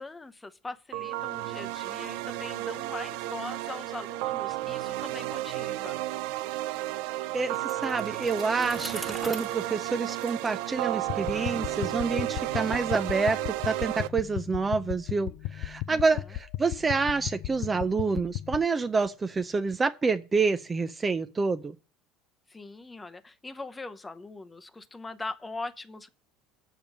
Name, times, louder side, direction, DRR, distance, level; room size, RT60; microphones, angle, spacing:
voice 1, 0.0-6.0 15.9-16.0 22.5-26.1, left 3 dB, 15° left, 0.8 m, -41 dB
sound 1, 0.9-14.1, right 16 dB, 75° right, 0.4 m, -33 dB
voice 2, 7.3-21.8, right 4 dB, 20° right, 0.5 m, -28 dB
Bicycle, 7.5-11.4, right 1 dB, 5° right, 1.9 m, -43 dB
sound 2, 11.1-18.6, left 15 dB, 65° left, 0.4 m, -36 dB
7.2 x 5.0 x 7.1 m
supercardioid pair, 120°, 0 cm